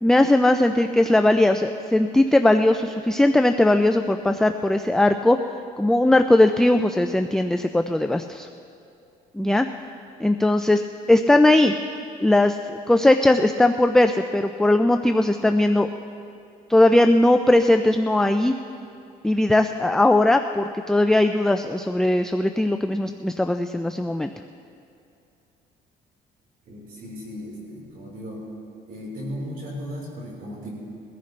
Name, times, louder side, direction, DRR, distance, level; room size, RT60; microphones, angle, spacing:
voice 1, 0.0-5.4 5.8-8.5 9.3-9.7 10.2-10.8 11.1-11.7 12.2-15.9 16.7-18.5 19.2-24.3, left 1 dB, 5° left, 7 dB, 0.4 m, -19 dB
voice 2, 26.6-28.5 28.9-30.7, equal, 60° right, -3 dB, 4.4 m, -36 dB
22.0 x 14.5 x 3.3 m, 2.6 s
cardioid pair, 110°, 17 cm